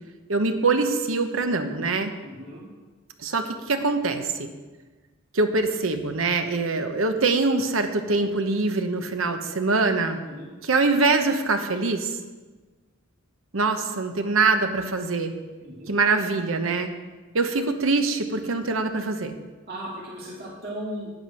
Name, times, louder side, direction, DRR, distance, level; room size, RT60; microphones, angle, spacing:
voice 1, 0.3-2.1 3.2-4.5 5.3-10.2 10.6-12.2 13.5-15.3 15.9-16.9 17.3-19.3, right 3 dB, 70° right, 7 dB, 1.0 m, -24 dB
voice 2, 2.2-2.6 10.2-10.5 15.6-15.9 19.7-21.1, equal, 50° right, -5 dB, 2.2 m, -36 dB
9.5 x 9.0 x 5.7 m, 1.3 s
head